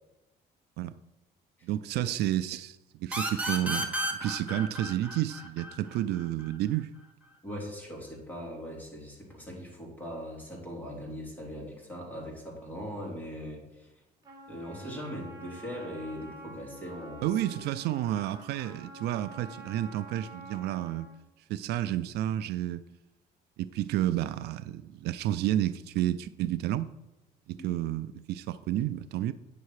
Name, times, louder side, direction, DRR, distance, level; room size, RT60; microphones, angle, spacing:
voice 1, 1.6-6.9 17.2-21.1 21.5-22.8 23.6-26.9 27.5-29.3, right 13 dB, 75° right, 0.4 m, -31 dB
sound 1, 3.1-6.5, right 1 dB, 10° right, 1.6 m, -33 dB
voice 2, 7.4-13.9 14.5-17.6 27.6-27.7, equal, 10° left, 3.5 m, -40 dB
Trumpet, 14.2-21.2, right 1 dB, 25° right, 3.1 m, -48 dB
9.3 x 6.5 x 4.8 m
cardioid pair, 110°, 17 cm